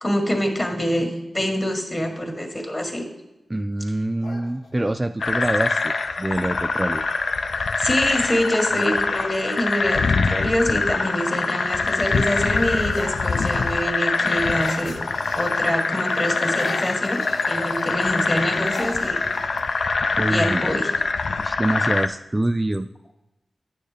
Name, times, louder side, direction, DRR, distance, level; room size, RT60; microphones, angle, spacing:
voice 1, 0.0-3.0 7.8-15.1 15.3-19.2 20.3-20.9, equal, 30° left, 2 dB, 1.8 m, -25 dB
voice 2, 3.5-7.0 20.2-20.7 21.4-22.9, right 1 dB, 25° right, 7 dB, 0.3 m, -25 dB
sound 1, 4.2-5.1 6.8-7.0 7.3-7.8 8.3-9.8 10.5-10.9 11.2-15.8 16.0-20.0, left 2 dB, 90° left, 1.0 m, -38 dB
sound 2, 5.2-22.1, left 4 dB, 70° left, 0.3 m, -24 dB
9.3 x 6.4 x 3.4 m, 0.96 s
cardioid pair, 40°, 0 cm